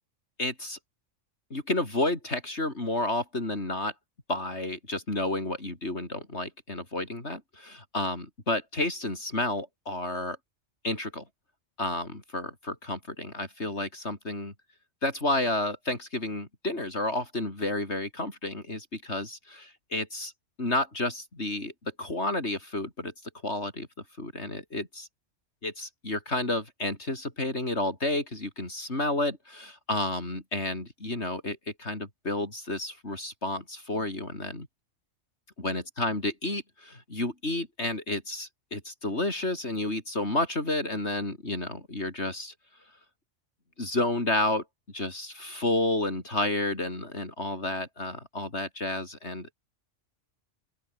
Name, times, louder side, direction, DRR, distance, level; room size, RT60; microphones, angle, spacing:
voice 1, 0.4-0.8 1.5-3.9 4.3-10.4 10.8-11.2 11.8-14.5 15.0-20.3 20.6-21.7 22.0-23.1 23.4-23.9 24.2-25.1 25.6-34.7 35.6-42.5 43.8-44.6 44.9-49.5, left 2 dB, 60° left, 5.3 m, -31 dB
open air
omnidirectional pair, 1.3 m